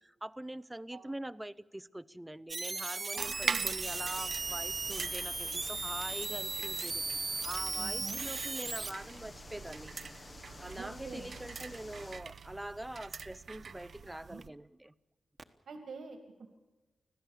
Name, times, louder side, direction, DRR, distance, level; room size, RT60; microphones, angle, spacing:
voice 1, 0.0-9.9 10.6-14.9, right 1 dB, 10° right, 0.6 m, -44 dB
sound 1, 2.5-8.9 12.3-12.4 15.4-15.5, right 4 dB, 40° right, 1.2 m, -37 dB
voice 2, 3.1-3.7 7.8-8.2 10.8-11.3 14.1-14.4 15.7-16.5, right 4 dB, 80° right, 2.1 m, -46 dB
sound 2, 3.2-14.5, right 5 dB, 60° right, 0.7 m, -43 dB
sound 3, 3.9-12.2, left 3 dB, 35° left, 1.1 m, -51 dB
25.5 x 16.5 x 7.2 m
wide cardioid pair, 110°, 0 cm